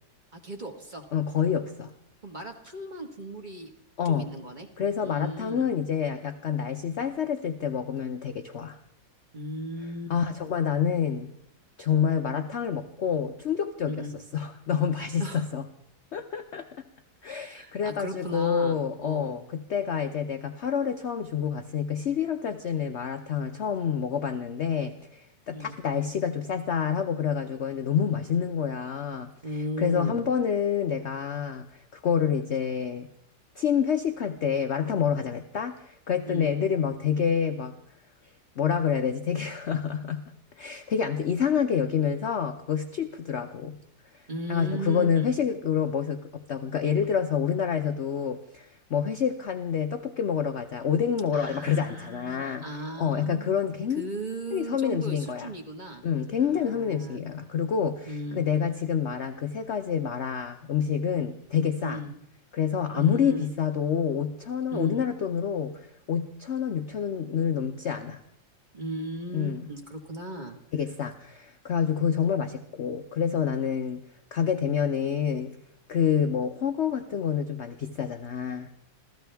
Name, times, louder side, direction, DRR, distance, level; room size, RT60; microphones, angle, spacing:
voice 1, 0.3-1.0 2.2-3.7 4.0-4.7 5.0-5.7 9.3-10.1 13.9-14.1 15.2-15.5 17.6-19.4 25.5-25.8 29.4-30.2 36.3-36.5 44.3-45.3 51.3-53.7 54.0-56.0 56.3-57.2 58.1-58.4 61.8-62.1 62.9-63.5 64.7-65.0 68.7-70.6, right 1 dB, 25° right, 3 dB, 1.5 m, -36 dB
voice 2, 1.1-1.9 4.0-4.3 4.8-8.8 10.1-11.3 11.8-14.1 14.3-15.6 16.1-16.7 17.2-24.9 25.5-29.3 29.8-31.7 31.9-33.1 33.6-37.7 38.6-40.3 40.6-43.8 44.5-52.6 53.0-54.0 54.5-55.5 56.0-62.0 62.5-65.7 66.1-68.2 69.3-69.6 70.7-74.0 74.3-75.5 75.9-78.7, left 7 dB, 60° left, 7 dB, 0.7 m, -27 dB
26.5 x 16.0 x 3.5 m, 0.74 s
omnidirectional pair, 2.0 m